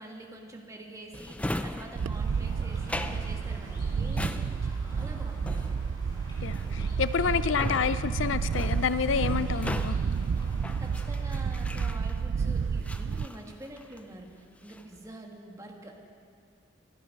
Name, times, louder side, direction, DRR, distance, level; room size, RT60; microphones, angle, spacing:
voice 1, 0.0-5.7 10.8-15.9, right 1 dB, 15° right, 0 dB, 1.8 m, -46 dB
Drawer open or close, 1.1-12.4 12.8-14.1 14.5-15.0, left 1 dB, 5° left, 0.5 m, -39 dB
Wind, 2.0-13.3, right 5 dB, 80° right, 0.4 m, -30 dB
sound 1, 2.1-11.5, equal, 25° left, 4.5 m, -51 dB
voice 2, 6.4-10.0, left 6 dB, 80° left, 14 dB, 0.4 m, -28 dB
25.0 x 10.0 x 5.3 m, 2.3 s
head